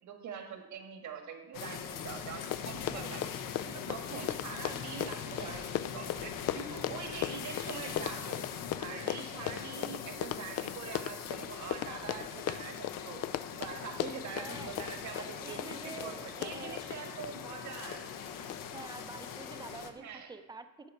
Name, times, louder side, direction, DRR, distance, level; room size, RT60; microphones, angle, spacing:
voice 1, 0.0-3.3 3.6-8.5 8.8-18.2 20.0-20.3, right 6 dB, 60° right, 4 dB, 1.6 m, -44 dB
sound 1, 1.5-19.9, left 7 dB, 75° left, 1.1 m, -42 dB
Run, 2.1-2.2 2.4-17.3 17.9-18.2 18.5-18.6, left 12 dB, 50° left, 0.4 m, -37 dB
voice 2, 2.9-3.4 4.1-4.2 8.9-9.2 14.4-14.8 15.1-16.8 18.7-20.9, right 4 dB, 15° right, 8 dB, 0.7 m, -47 dB
11.5 x 8.3 x 4.6 m, 1.1 s
cardioid pair, 130°, 33 cm